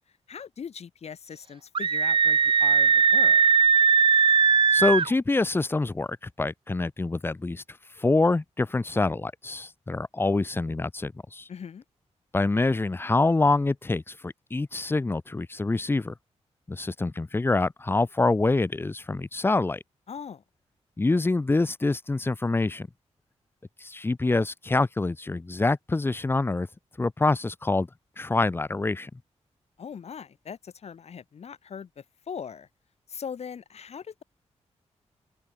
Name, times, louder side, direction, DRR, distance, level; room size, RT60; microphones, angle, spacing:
voice 1, 0.3-3.4 11.5-11.8 20.1-20.4 29.8-31.9 32.3-32.7 33.1-34.2, left 7 dB, 65° left, 3.8 m, -40 dB
Screaming, 1.7-5.1, right 6 dB, 45° right, 0.8 m, -19 dB
voice 2, 4.7-6.1 6.4-7.6 8.0-11.5 12.3-16.1 16.7-19.8 21.0-22.9 23.8-26.7 27.0-27.9 28.2-29.1, left 3 dB, 20° left, 0.8 m, -25 dB
open air
wide cardioid pair, 130°, 12 cm